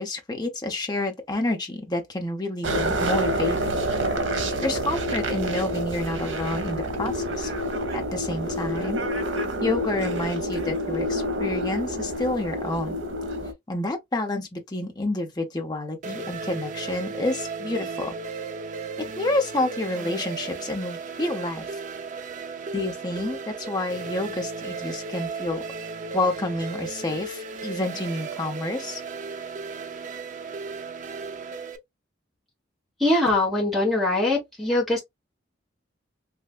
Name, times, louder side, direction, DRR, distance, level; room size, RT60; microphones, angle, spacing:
voice 1, 0.0-3.7 4.6-7.5 7.9-9.0 9.6-13.0 13.7-18.1 19.0-21.7 22.7-25.6 26.1-29.0, left 2 dB, 20° left, 0.7 m, -29 dB
sound 1, 2.6-13.5, equal, 70° right, 0.8 m, -28 dB
sound 2, 16.0-31.8, right 4 dB, 40° right, 0.4 m, -35 dB
voice 2, 33.0-35.0, left 2 dB, ahead, 1.1 m, -22 dB
3.2 x 2.7 x 2.4 m
head